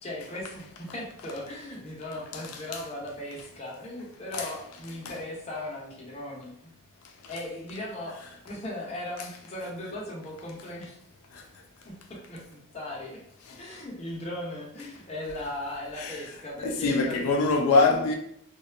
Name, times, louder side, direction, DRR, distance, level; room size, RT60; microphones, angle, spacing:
voice 1, 0.0-6.7 7.3-8.2 8.5-11.0 11.9-13.2 13.5-17.2, left 1 dB, 30° left, 0.6 m, -38 dB
voice 2, 2.3-2.8 4.3-4.5 5.0-5.1 11.3-11.4 13.5-13.6 15.9-18.2, left 3 dB, 85° left, 0.4 m, -25 dB
2.6 x 2.2 x 2.4 m
head